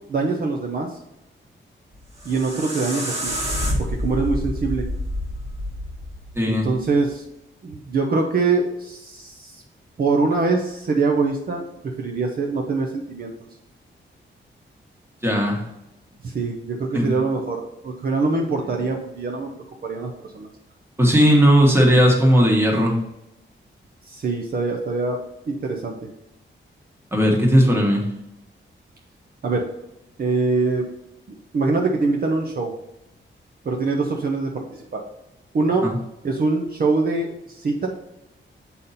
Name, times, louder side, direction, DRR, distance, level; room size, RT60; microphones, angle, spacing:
voice 1, 0.1-1.0 2.2-3.3 3.8-4.9 6.5-7.2 7.6-9.6 10.0-13.3 16.2-19.5 19.8-20.5 24.0-25.2 25.5-26.1 29.4-29.7 30.2-30.9 31.5-32.7 33.6-35.0 35.5-35.9 36.2-37.9, right 3 dB, 50° right, 1 dB, 0.7 m, -23 dB
sound 1, 1.9-7.0, equal, 30° right, 1.4 m, -28 dB
voice 2, 6.3-6.7 15.2-15.6 16.4-16.5 16.9-17.1 21.0-23.0 27.1-28.0 35.8-35.9, equal, 10° right, 0 dB, 1.4 m, -17 dB
7.0 x 4.2 x 4.1 m, 0.89 s
wide cardioid pair, 160°, 20 cm